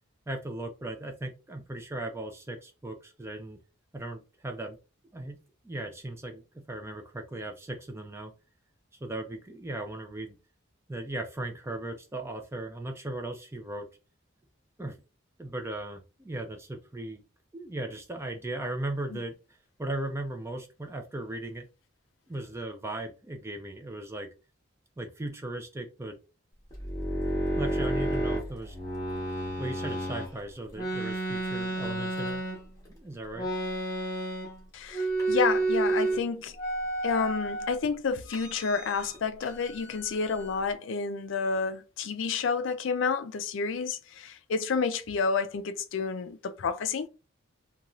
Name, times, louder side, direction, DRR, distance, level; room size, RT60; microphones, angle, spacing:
voice 1, 0.3-3.6 3.9-4.8 5.1-5.4 5.6-8.3 9.0-10.3 10.9-13.9 14.8-15.0 15.4-17.2 17.5-19.4 19.8-21.7 22.3-24.3 25.0-26.2 27.6-28.8 29.6-32.4 32.9-33.5, right 1 dB, 10° right, 0.3 m, -37 dB
sound 1, 26.7-30.3 30.7-32.9 33.3-34.6 34.9-36.2 36.6-37.7 38.3-39.2 39.4-40.6, right 2 dB, 15° left, 1.0 m, -31 dB
voice 2, 34.7-36.6 37.0-47.1, left 5 dB, 65° left, 0.4 m, -30 dB
2.6 x 2.3 x 2.9 m
head